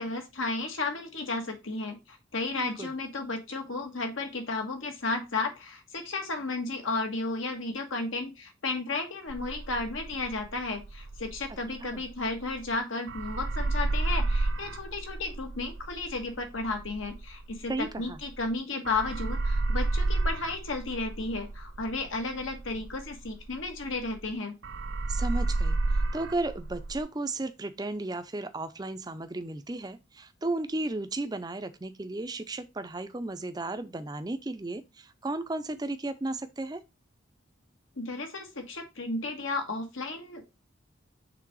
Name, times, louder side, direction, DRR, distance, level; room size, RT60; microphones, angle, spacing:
voice 1, 0.0-24.5 38.0-40.5, left 3 dB, 80° left, 1.5 m, -33 dB
voice 2, 2.5-2.9 11.8-12.0 17.7-18.2 25.1-36.8, right 2 dB, 20° right, 0.5 m, -34 dB
sound 1, 9.3-12.8 13.1-18.5 18.8-24.3 24.6-27.0, right 2 dB, 65° right, 0.6 m, -31 dB
6.0 x 3.5 x 4.7 m
head